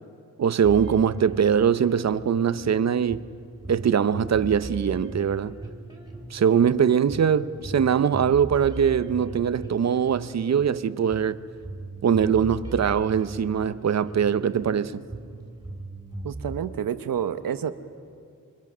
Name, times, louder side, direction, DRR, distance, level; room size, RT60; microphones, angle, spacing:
voice 1, 0.4-3.3 3.7-5.6 6.3-11.4 12.0-15.0, right 7 dB, 55° right, 0.7 m, -22 dB
sound 1, 0.6-16.6, right 2 dB, 15° right, 2.9 m, -39 dB
voice 2, 16.2-17.7, right 8 dB, 85° right, 0.9 m, -29 dB
26.5 x 24.5 x 6.2 m
wide cardioid pair, 115°, 33 cm